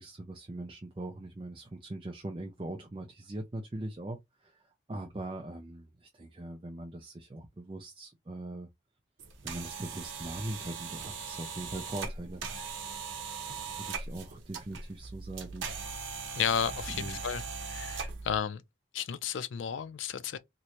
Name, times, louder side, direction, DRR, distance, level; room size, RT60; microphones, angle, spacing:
voice 1, 0.0-4.6 4.9-8.7 9.4-12.4 13.6-15.7 16.9-17.2, right 1 dB, 25° right, 0.4 m, -41 dB
sound 1, 9.2-18.4, right 5 dB, 85° right, 0.7 m, -40 dB
voice 2, 16.4-18.6 18.9-20.4, left 8 dB, 80° left, 0.4 m, -33 dB
3.1 x 2.5 x 2.9 m
head